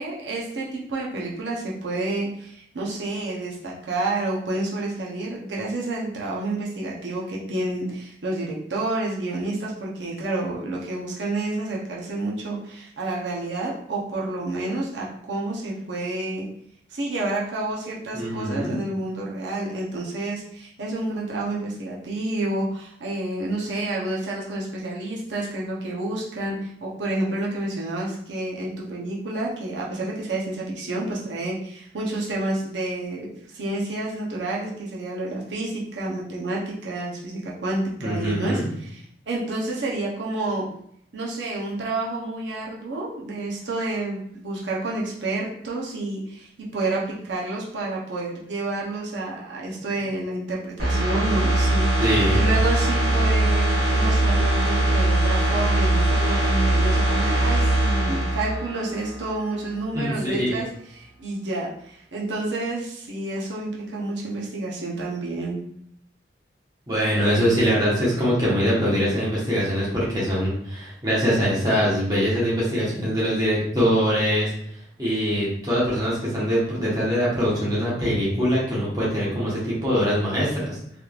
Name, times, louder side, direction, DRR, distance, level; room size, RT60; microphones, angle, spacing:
voice 1, 0.0-16.5 16.9-40.7 41.1-52.0 52.3-65.6, right 2 dB, 85° right, -4 dB, 0.7 m, -29 dB
voice 2, 18.1-18.8 38.0-38.7 52.0-52.4 59.9-60.6 66.9-74.5 75.0-80.8, equal, 20° right, -7 dB, 1.1 m, -23 dB
sound 1, 50.8-59.5 59.8-59.9, right 1 dB, 60° right, 1.5 m, -21 dB
3.4 x 3.1 x 2.4 m, 0.68 s
head